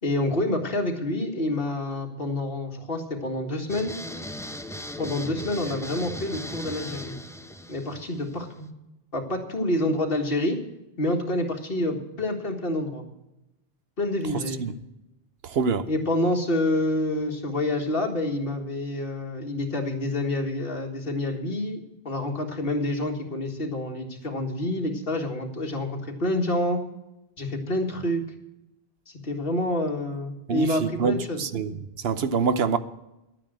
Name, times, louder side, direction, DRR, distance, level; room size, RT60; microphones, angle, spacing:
voice 1, 0.0-4.0 5.0-7.1 7.7-8.7 9.1-10.6 11.0-13.0 14.0-14.8 15.9-26.8 27.4-28.3 29.2-31.4, left 1 dB, 65° left, 2.2 m, -27 dB
sound 1, 3.7-8.7, left 1 dB, 5° left, 0.6 m, -38 dB
voice 2, 15.4-15.9 30.5-32.8, right 5 dB, 80° right, 1.0 m, -26 dB
11.5 x 9.1 x 7.6 m
omnidirectional pair, 1.0 m